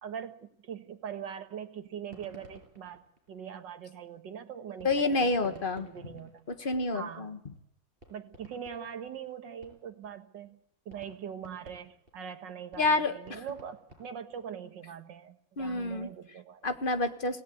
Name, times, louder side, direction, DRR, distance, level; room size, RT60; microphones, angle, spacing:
voice 1, 0.0-3.0 3.3-6.4 6.9-7.3 8.1-10.6 10.9-16.7, right 8 dB, 65° right, 7 dB, 2.1 m, -42 dB
sound 1, 2.0-3.8 4.8-7.2 7.6-7.7 8.0-10.1 10.4-10.5 10.9-14.5, right 1 dB, 30° right, 6.1 m, -54 dB
voice 2, 4.8-6.1 6.5-7.4 12.8-13.4 15.6-16.1 16.6-17.4, left 2 dB, 30° left, 8 dB, 1.4 m, -29 dB
27.0 x 17.5 x 8.4 m, 0.80 s
omnidirectional pair, 2.1 m